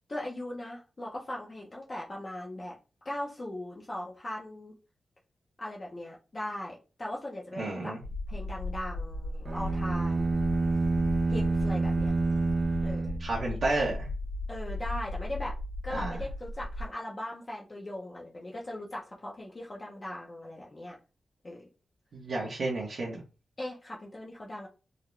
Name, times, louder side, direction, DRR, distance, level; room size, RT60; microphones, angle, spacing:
voice 1, 0.1-2.8 3.0-4.7 5.6-8.0 8.3-10.4 11.3-12.1 12.8-13.2 14.5-15.5 15.8-21.0 21.4-21.6 23.6-24.7, left 1 dB, 30° left, -4 dB, 0.6 m, -39 dB
voice 2, 7.6-8.0 13.2-14.1 15.9-16.2 22.1-23.2, right 2 dB, 60° right, -5 dB, 1.0 m, -31 dB
sound 1, 8.0-16.9, left 2 dB, 65° left, 1.5 m, -36 dB
sound 2, 9.5-13.8, right 3 dB, 40° right, 0.4 m, -28 dB
3.8 x 2.2 x 3.1 m, 0.32 s
wide cardioid pair, 160°, 0 cm